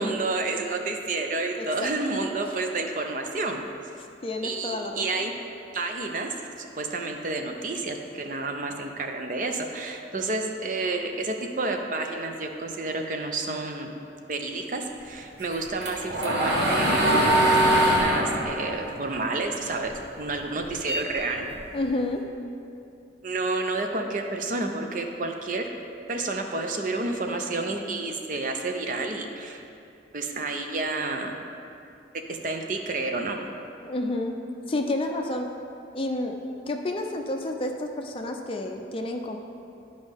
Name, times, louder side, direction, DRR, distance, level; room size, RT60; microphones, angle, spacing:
voice 1, 0.0-3.6 4.4-5.3 5.7-13.9 14.3-21.5 23.2-25.7 26.1-29.6 30.1-31.4 32.3-33.4, right 3 dB, 45° right, 4 dB, 0.5 m, -30 dB
voice 2, 1.6-1.9 4.2-5.3 21.7-22.2 33.8-34.4 34.7-35.5 35.9-36.4 36.7-39.4, left 2 dB, 30° left, 3 dB, 0.4 m, -30 dB
sound 1, 15.4-19.9 20.3-21.8, right 1 dB, 70° right, 1.2 m, -23 dB
11.0 x 5.3 x 3.5 m, 2.6 s
head